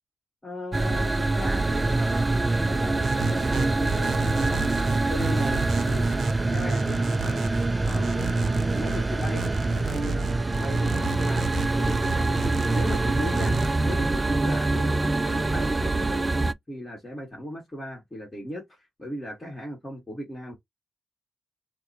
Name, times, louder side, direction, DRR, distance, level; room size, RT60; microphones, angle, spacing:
voice 1, 0.4-4.7 5.1-6.2 6.5-8.3 8.7-20.6, equal, 20° left, 1.8 m, -37 dB
sound 1, 0.7-16.5, right 2 dB, 20° right, 0.3 m, -25 dB
sound 2, 3.0-13.7, right 5 dB, 60° right, 0.7 m, -34 dB
4.4 x 2.1 x 2.8 m
cardioid pair, 90°, 0 cm